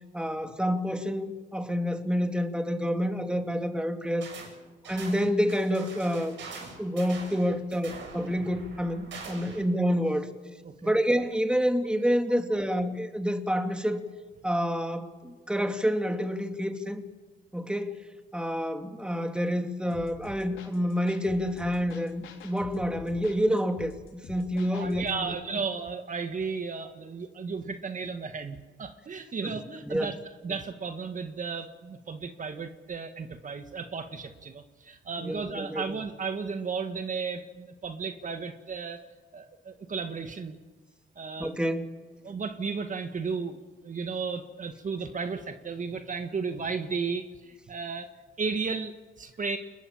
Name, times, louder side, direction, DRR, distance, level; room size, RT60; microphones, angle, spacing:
voice 1, 0.1-4.3 4.9-6.4 6.8-10.3 10.8-14.0 14.4-17.0 17.5-18.0 18.3-25.3 29.9-30.1 35.2-36.0 41.4-41.9, equal, 5° right, 6 dB, 2.6 m, -28 dB
sound 1, 4.2-4.5 4.8-9.7, right 4 dB, 70° right, 8.0 m, -43 dB
sound 2, 19.9-25.2, left 6 dB, 80° left, 4.4 m, -47 dB
voice 2, 24.6-30.2 30.4-39.0 39.3-40.6 41.2-41.5 42.2-49.6, right 5 dB, 40° right, 7 dB, 1.8 m, -34 dB
30.0 x 21.5 x 7.4 m, 1.3 s
cardioid pair, 90°, 20 cm